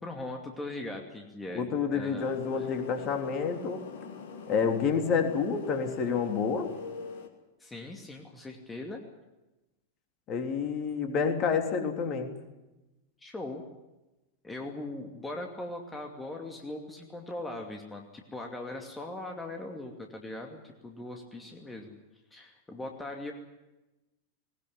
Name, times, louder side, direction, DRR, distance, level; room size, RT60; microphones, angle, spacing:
voice 1, 0.0-2.3 2.6-2.7 7.6-9.0 13.2-13.6 14.4-22.0 22.3-23.3, left 2 dB, 10° left, 2 dB, 2.5 m, -40 dB
voice 2, 1.5-3.8 4.5-6.7 10.3-12.3, left 6 dB, 35° left, 5 dB, 3.3 m, -29 dB
sound 1, 2.2-7.3, left 5 dB, 55° left, 2.6 m, -44 dB
20.0 x 19.5 x 9.9 m, 1.0 s
figure-of-eight pair, 90°, 0 cm